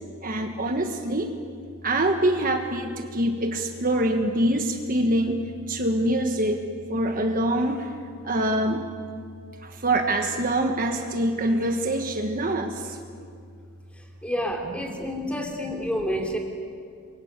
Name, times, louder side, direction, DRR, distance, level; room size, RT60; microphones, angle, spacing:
voice 1, 0.2-1.3 1.8-5.4 5.7-6.6 6.9-7.9 8.2-8.8 9.8-13.0 15.0-15.3, right 1 dB, 40° right, 4 dB, 1.5 m, -25 dB
voice 2, 14.2-16.4, equal, 5° left, 1 dB, 3.2 m, -29 dB
29.0 x 23.0 x 8.3 m, 2.3 s
head